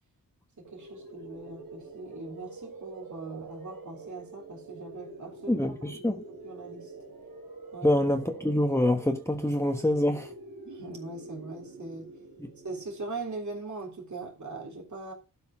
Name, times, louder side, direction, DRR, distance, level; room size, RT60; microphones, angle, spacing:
voice 1, 0.6-6.9 7.7-7.9 10.6-12.1 12.6-15.1, right 3 dB, 55° right, 3.4 m, -41 dB
sound 1, 0.6-13.4, right 3 dB, 70° right, 3.3 m, -46 dB
voice 2, 5.5-6.2 7.8-10.3 12.4-12.5, left 1 dB, 10° left, 1.3 m, -26 dB
12.0 x 5.4 x 5.9 m
cardioid pair, 70°, 36 cm